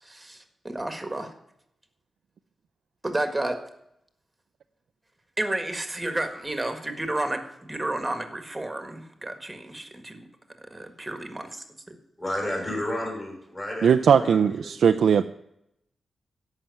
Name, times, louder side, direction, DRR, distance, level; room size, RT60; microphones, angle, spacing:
voice 1, 0.0-1.3 3.0-3.6 5.4-10.3 10.6-12.0, right 1 dB, 15° right, 7 dB, 1.7 m, -31 dB
voice 2, 12.2-15.0, left 1 dB, 25° left, 0 dB, 5.4 m, -32 dB
voice 3, 13.8-15.2, right 7 dB, 85° right, 8 dB, 0.4 m, -19 dB
13.0 x 5.9 x 9.6 m, 0.78 s
wide cardioid pair, 135°, 0 cm